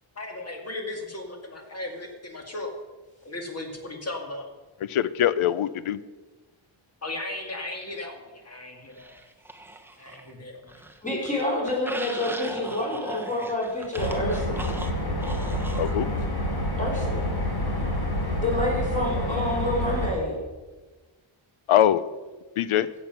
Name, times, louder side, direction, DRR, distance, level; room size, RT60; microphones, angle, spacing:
voice 1, 0.2-2.7 3.2-4.5 7.0-9.1 10.0-10.7, left 2 dB, 30° left, 3 dB, 2.1 m, -36 dB
voice 2, 4.9-6.0 15.8-16.1 21.7-22.0 22.6-22.9, left 11 dB, 85° left, 16 dB, 0.7 m, -22 dB
sound 1, 9.0-10.3 10.6-16.0, right 2 dB, 5° right, 0.9 m, -39 dB
voice 3, 11.0-14.7 16.8-17.2 18.4-20.4, left 1 dB, 15° left, -2 dB, 3.6 m, -28 dB
sound 2, 14.0-20.1, left 1 dB, 50° left, 3.1 m, -28 dB
15.5 x 7.6 x 5.9 m, 1.2 s
wide cardioid pair, 150°, 49 cm